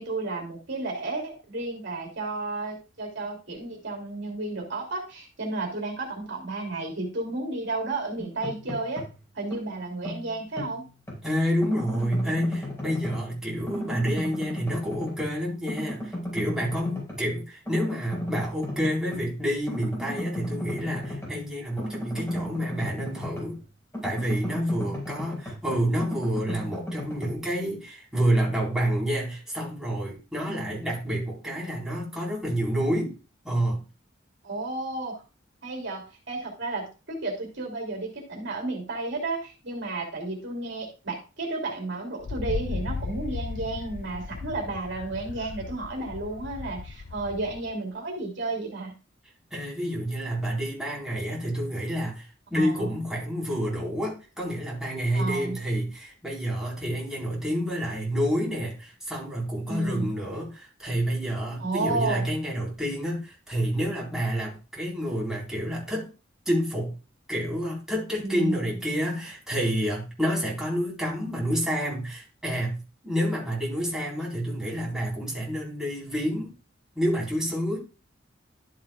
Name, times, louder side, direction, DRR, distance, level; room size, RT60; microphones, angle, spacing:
voice 1, 0.0-9.0 9.3-10.9 30.5-30.8 34.4-35.2 35.6-48.9 52.6-52.9 55.1-55.6 59.7-60.1 61.6-62.2 68.2-68.7, right 2 dB, 65° right, 0 dB, 2.8 m, -32 dB
sound 1, 8.2-9.2 9.5-11.2 11.6-13.4 13.7-15.4 15.7-17.3 17.6-19.3 19.7-23.6 23.9-27.3, equal, 15° left, 4.8 m, -35 dB
voice 2, 11.2-23.6 24.0-33.1 33.4-33.8 49.5-66.1 66.5-66.9 67.3-76.5 76.9-77.8, equal, 5° right, -5 dB, 4.1 m, -29 dB
Wind, 42.2-47.7, left 4 dB, 45° left, 0.3 m, -36 dB
12.5 x 7.4 x 2.4 m, 0.32 s
head